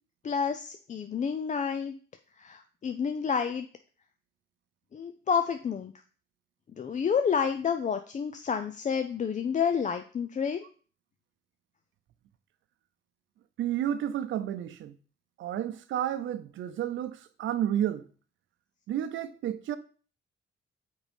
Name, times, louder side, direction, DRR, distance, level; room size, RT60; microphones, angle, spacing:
voice 1, 0.2-1.9 2.4-3.7 4.9-5.9 6.8-10.7, left 6 dB, 40° left, 0.6 m, -29 dB
voice 2, 13.6-14.9 15.4-18.1 18.9-19.8, right 11 dB, 75° right, 0.7 m, -31 dB
6.2 x 4.9 x 5.3 m
cardioid pair, 90°, 20 cm